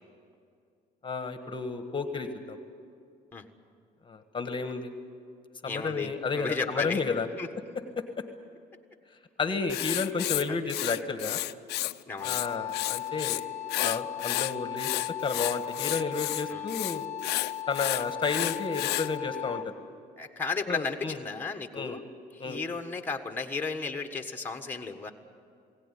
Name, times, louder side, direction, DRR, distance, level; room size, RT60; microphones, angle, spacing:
voice 1, 1.0-2.6 4.0-4.9 5.6-7.3 8.0-8.1 9.4-11.4 12.2-13.5 13.8-14.9 15.2-17.1 17.7-19.6 20.7-21.2 21.7-22.0 22.4-22.6, left 4 dB, 30° left, 8 dB, 1.5 m, -32 dB
voice 2, 5.6-7.0 7.4-7.5 10.5-10.6 12.1-12.4 16.5-16.6 20.2-22.0 22.4-25.1, left 4 dB, 10° left, 3 dB, 1.6 m, -34 dB
Writing, 9.7-11.9 12.2-13.4 13.7-19.1, left 17 dB, 80° left, 0.6 m, -31 dB
Wind instrument woodwind instrument, 12.2-19.8, left 12 dB, 45° left, 0.9 m, -37 dB
21.5 x 17.5 x 10.0 m, 2.3 s
cardioid pair, 110°, 17 cm